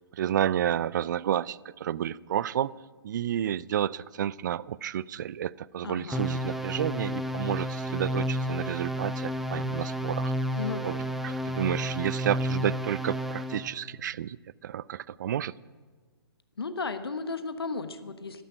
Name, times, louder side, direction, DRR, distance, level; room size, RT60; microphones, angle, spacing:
voice 1, 0.1-2.7 3.0-10.3 10.8-11.0 11.2-14.4 14.6-15.5, right 10 dB, 50° right, 22 dB, 0.4 m, -30 dB
voice 2, 5.8-6.3 10.5-11.0 16.6-18.4, left 4 dB, 70° left, 11 dB, 1.1 m, -34 dB
sound 1, 6.1-13.7, equal, ahead, 0.8 m, -31 dB
13.0 x 12.5 x 9.1 m, 1.4 s
figure-of-eight pair, 120°, 13 cm